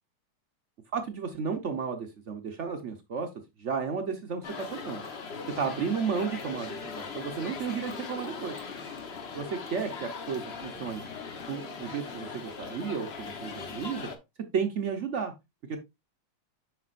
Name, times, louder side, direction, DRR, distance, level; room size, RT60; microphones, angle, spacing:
voice 1, 0.9-3.3 3.6-5.1 5.6-8.6 9.3-11.0 11.5-14.1 14.5-15.3 15.7-15.8, right 6 dB, 70° right, 5 dB, 0.6 m, -33 dB
sound 1, 4.4-14.2, left 5 dB, 50° left, 0.8 m, -40 dB
7.5 x 5.9 x 2.5 m, 0.22 s
omnidirectional pair, 2.2 m